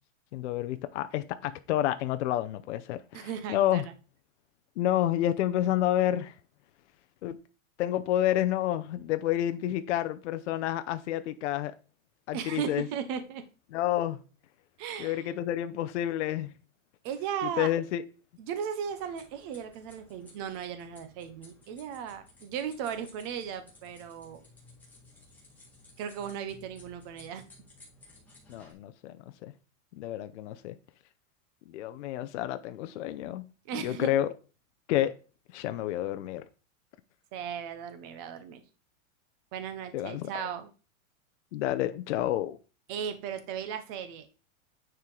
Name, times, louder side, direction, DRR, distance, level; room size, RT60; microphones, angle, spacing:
voice 1, 0.3-3.8 4.8-6.3 7.2-7.4 7.8-11.7 12.3-12.9 13.7-14.2 15.0-16.5 17.6-18.0 28.5-29.5 29.9-30.7 31.7-33.4 33.7-34.3 34.9-35.1 35.5-36.4 39.9-40.4 41.5-42.6, left 12 dB, 55° left, 0.6 m, -29 dB
voice 2, 3.1-3.8 12.3-13.4 14.8-15.2 17.0-17.7 18.4-24.4 26.0-27.4 33.7-34.1 37.3-38.6 39.5-40.7 42.9-44.3, right 8 dB, 20° right, 0.4 m, -36 dB
sound 1, 18.8-28.7, left 2 dB, 5° left, 1.6 m, -56 dB
9.4 x 4.5 x 3.8 m
supercardioid pair, 170°, 41 cm